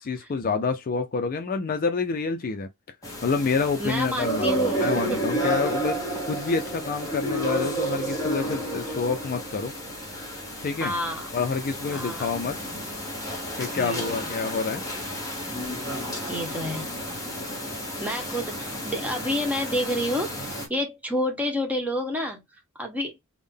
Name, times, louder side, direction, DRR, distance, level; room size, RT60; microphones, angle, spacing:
voice 1, 0.0-2.7 3.2-6.0 6.3-9.7 10.6-10.9 11.3-12.6 13.6-14.8, left 4 dB, 40° left, 0.4 m, -27 dB
sound 1, 3.0-20.7, right 1 dB, 15° left, 1.1 m, -31 dB
voice 2, 3.8-5.3 10.8-11.3 11.9-12.3 13.8-14.2 16.0-16.9 18.0-22.4 22.8-23.2, equal, 5° right, 1.1 m, -29 dB
3.6 x 2.1 x 3.4 m
head